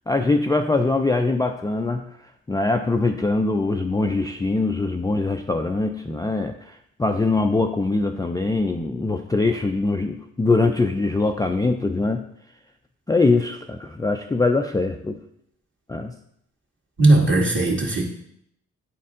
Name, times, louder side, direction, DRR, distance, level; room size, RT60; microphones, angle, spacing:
voice 1, 0.1-2.0 2.5-12.2 13.1-15.2 15.9-16.1, left 3 dB, 10° left, 5 dB, 0.4 m, -22 dB
voice 2, 17.0-18.1, right 2 dB, 40° right, -1 dB, 2.0 m, -17 dB
8.5 x 4.2 x 3.7 m, 0.73 s
cardioid pair, 60°, 32 cm